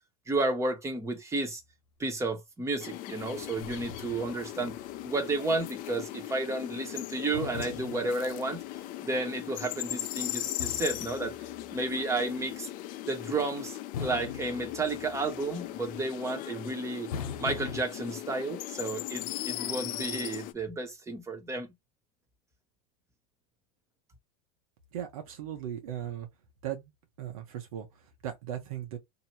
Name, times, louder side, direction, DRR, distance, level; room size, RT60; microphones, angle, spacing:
voice 1, 0.3-1.6 2.0-4.8 5.0-8.6 9.0-11.4 11.7-12.7 13.0-17.1 17.4-21.7, right 2 dB, 15° right, 1.4 m, -32 dB
sound 1, 2.8-2.9 3.2-5.2 5.6-5.7 7.3-8.7 10.6-12.0 13.9-15.5 17.1-17.8, left 6 dB, 80° left, 1.1 m, -42 dB
sound 2, 2.8-20.5, left 15 dB, 50° left, 0.6 m, -39 dB
voice 2, 24.9-26.3 26.6-26.9 27.2-29.0, right 10 dB, 75° right, 1.2 m, -38 dB
3.0 x 2.7 x 4.5 m
hypercardioid pair, 105°, 18 cm